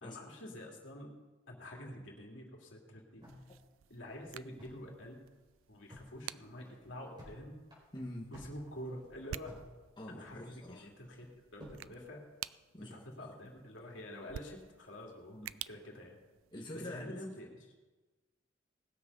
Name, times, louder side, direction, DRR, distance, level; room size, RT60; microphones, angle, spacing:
voice 1, 0.0-1.1 1.5-3.2 3.9-5.2 5.7-7.6 8.3-9.5 10.1-11.3 11.5-12.2 12.8-16.2 16.8-17.7, left 1 dB, 70° left, 0 dB, 2.6 m, -47 dB
sound 1, 3.2-4.9 5.2-5.3 5.6-6.1 6.5-7.4 7.7-9.7 10.0-10.7 11.2-11.9, equal, 25° right, 4.5 m, -54 dB
sound 2, 3.2-16.9, right 11 dB, 90° right, 0.3 m, -52 dB
voice 2, 7.9-8.3 10.0-10.9 12.7-13.0 15.3-15.5 16.5-17.2, left 1 dB, 25° left, -3 dB, 1.6 m, -45 dB
19.0 x 7.4 x 5.5 m, 1.2 s
head